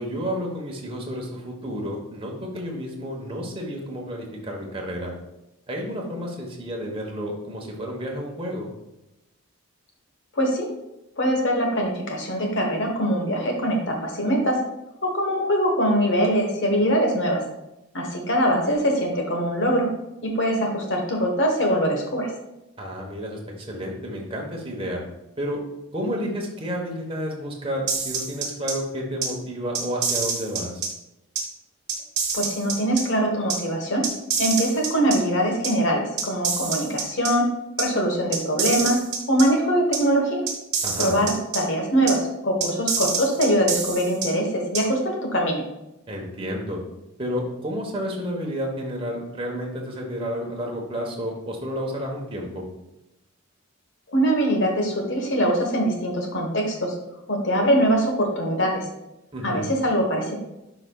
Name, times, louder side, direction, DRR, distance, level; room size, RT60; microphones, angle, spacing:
voice 1, 0.0-5.1 5.7-8.7 22.8-25.0 25.4-25.6 25.9-30.8 40.8-41.2 46.1-46.8 47.2-52.6 59.3-59.7, equal, 25° right, -1 dB, 1.2 m, -31 dB
voice 2, 10.4-10.7 11.2-14.6 15.0-17.4 17.9-19.9 20.2-22.3 32.3-34.1 34.4-37.5 37.8-39.0 39.3-40.5 41.0-45.6 54.1-56.9 57.3-58.9 59.4-60.4, equal, 55° left, 2 dB, 1.3 m, -22 dB
sound 1, 27.9-28.7 29.2-29.3 29.7-30.9 31.3-31.4 31.9-33.0 33.5-33.6 34.0-35.2 35.6-35.7 36.2-37.3 37.8-37.9 38.3-39.4 39.9-40.0 40.5-41.6 42.1-42.2 42.6-44.3 44.7-44.8, right 5 dB, 50° right, 1.4 m, -26 dB
9.8 x 5.0 x 2.4 m, 0.92 s
head